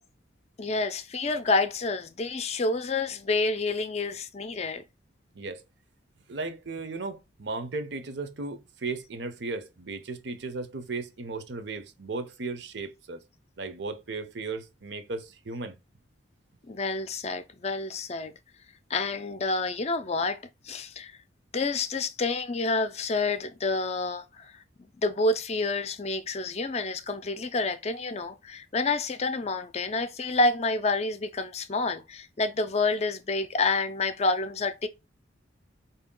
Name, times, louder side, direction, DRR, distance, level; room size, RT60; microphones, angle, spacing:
voice 1, 0.6-4.8 16.7-18.3 18.9-21.2 21.5-34.9, left 3 dB, 35° left, 0.4 m, -28 dB
voice 2, 6.3-13.2 13.6-15.8, right 3 dB, 65° right, 0.7 m, -36 dB
4.5 x 2.8 x 3.7 m
head